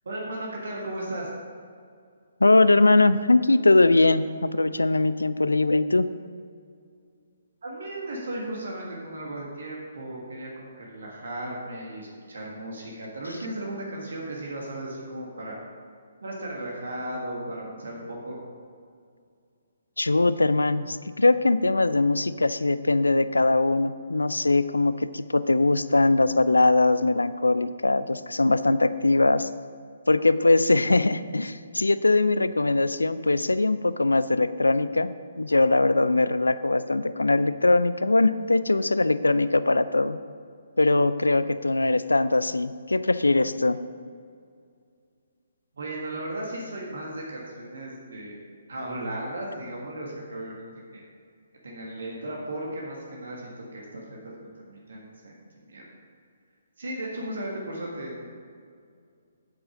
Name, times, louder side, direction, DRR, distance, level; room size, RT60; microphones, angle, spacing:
voice 1, 0.0-1.3 7.6-15.6 16.2-18.4 45.7-48.4 48.7-50.6 50.9-51.0 51.6-55.3 55.6-55.8 56.8-58.3, right 1 dB, 60° right, -2 dB, 1.8 m, -35 dB
voice 2, 2.4-6.1 20.0-29.5 30.1-40.2 40.8-43.8, left 2 dB, 75° left, 14 dB, 0.4 m, -21 dB
8.4 x 7.9 x 5.1 m, 2.2 s
figure-of-eight pair, 135°, 0 cm